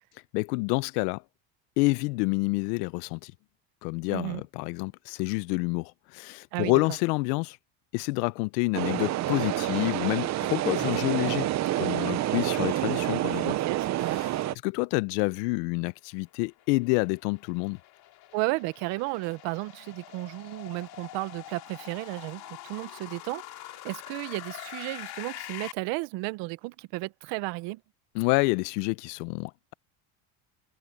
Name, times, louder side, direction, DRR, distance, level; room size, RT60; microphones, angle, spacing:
voice 1, 0.3-1.2 1.8-3.3 3.8-7.6 7.9-11.5 11.8-13.6 14.6-17.8 28.1-29.7, left 25 dB, 90° left, 0.7 m, -28 dB
voice 2, 4.1-4.4 6.5-6.7 13.5-14.2 18.3-23.6 23.8-27.8, right 22 dB, 65° right, 1.1 m, -33 dB
sound 1, 8.7-14.5, right 14 dB, 35° right, 0.7 m, -28 dB
sound 2, 16.2-25.7, left 15 dB, 50° left, 2.6 m, -44 dB
cardioid pair, 135°, 47 cm